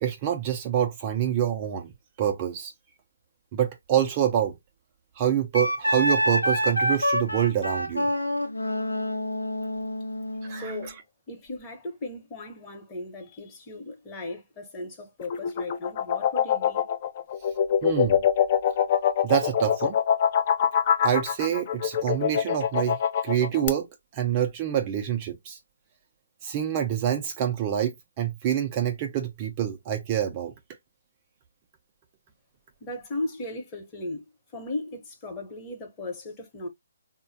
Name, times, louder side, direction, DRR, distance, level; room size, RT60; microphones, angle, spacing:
voice 1, 0.0-1.9 2.2-2.7 3.5-4.6 5.2-8.1 10.4-10.7 17.8-18.2 19.2-20.0 21.0-23.0 23.2-23.9 24.1-25.6 26.4-30.5, right 10 dB, 30° right, 0.4 m, -26 dB
Wind instrument woodwind instrument, 5.5-10.9, equal, 90° left, 0.7 m, -27 dB
voice 2, 10.5-11.0 11.3-16.9 32.8-34.3 34.5-36.7, left 2 dB, 20° left, 0.9 m, -36 dB
sound 1, 15.2-23.7, left 9 dB, 35° left, 0.4 m, -24 dB
3.7 x 2.1 x 2.6 m
figure-of-eight pair, 140°, 0 cm